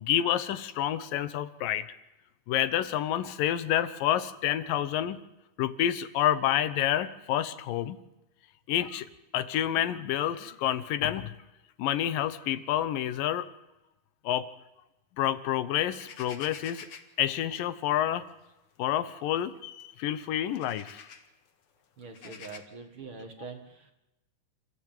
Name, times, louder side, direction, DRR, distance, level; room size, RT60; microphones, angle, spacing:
voice 1, 0.0-1.9 2.5-5.2 5.6-8.0 8.7-11.3 11.8-13.5 14.2-14.5 15.2-16.9 17.2-18.2 18.8-21.1 22.2-22.3, left 11 dB, 85° left, 14 dB, 2.7 m, -28 dB
sound 1, 16.0-17.2 18.3-18.5 19.0-19.1 19.8-19.9 20.4-21.3 22.0-22.6, left 6 dB, 50° left, 2.3 m, -47 dB
voice 2, 22.0-23.9, right 4 dB, 45° right, 6 dB, 2.2 m, -44 dB
28.0 x 15.0 x 9.2 m, 0.97 s
omnidirectional pair, 3.8 m